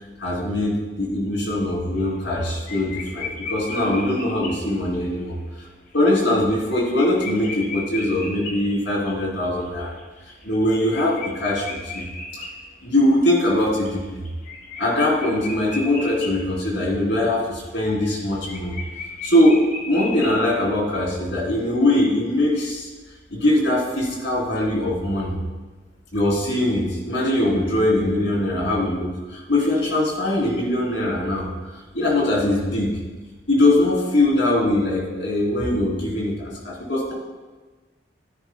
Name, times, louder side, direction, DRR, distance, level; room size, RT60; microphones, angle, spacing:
voice 1, 0.2-5.3 5.9-9.9 10.4-12.0 12.3-12.4 12.8-14.2 14.8-18.7 19.2-22.9 23.3-25.3 26.1-31.5 31.7-33.0 33.5-37.1, left 1 dB, 75° left, -4 dB, 3.2 m, -21 dB
sound 1, 2.0-2.4 2.7-5.0 5.6-5.7 5.9-6.0 6.4-13.2 13.6-16.5 16.8-16.9 17.2-20.4, left 3 dB, 45° left, 1.5 m, -36 dB
14.5 x 9.9 x 2.2 m, 1.3 s
head